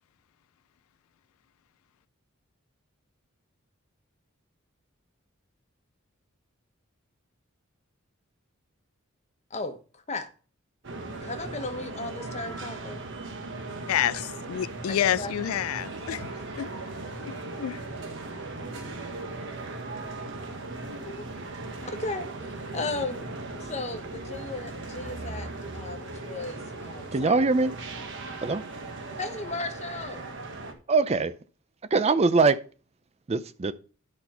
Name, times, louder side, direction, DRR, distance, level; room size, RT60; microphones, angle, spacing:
voice 1, 9.5-10.3 11.2-13.0 14.9-15.3 21.0-21.2 22.0-23.3 23.6-27.7 29.2-30.2, left 2 dB, 30° left, 1.1 m, -36 dB
sound 1, 10.8-30.7, right 2 dB, 60° right, 1.4 m, -38 dB
voice 2, 13.9-16.3 16.6-16.7 17.2-17.8, left 11 dB, 80° left, 0.3 m, -28 dB
voice 3, 27.1-27.7 28.4-28.6 30.9-31.3 31.9-32.6 33.3-33.7, right 3 dB, 30° right, 0.4 m, -22 dB
10.5 x 4.3 x 5.5 m
head